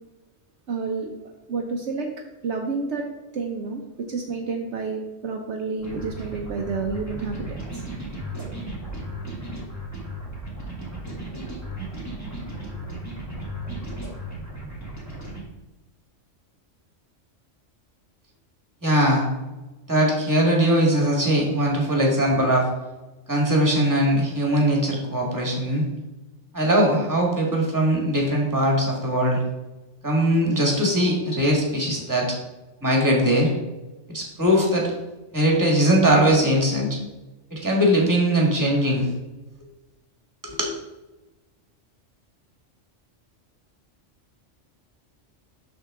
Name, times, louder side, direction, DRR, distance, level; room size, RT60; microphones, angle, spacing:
voice 1, 0.7-1.1 1.5-2.1 2.4-3.0 3.3-3.8 4.1-7.8, right 4 dB, 65° right, 2 dB, 1.1 m, -29 dB
sound 1, 5.8-15.4, right 1 dB, 15° left, 2.1 m, -35 dB
voice 2, 18.8-19.3 19.9-22.7 23.3-25.9 26.5-29.4 30.0-32.3 32.8-33.5 34.1-34.9 35.3-36.9 37.5-39.1 40.4-40.7, equal, 15° right, -1 dB, 1.8 m, -20 dB
6.6 x 6.3 x 3.7 m, 1.1 s
omnidirectional pair, 1.3 m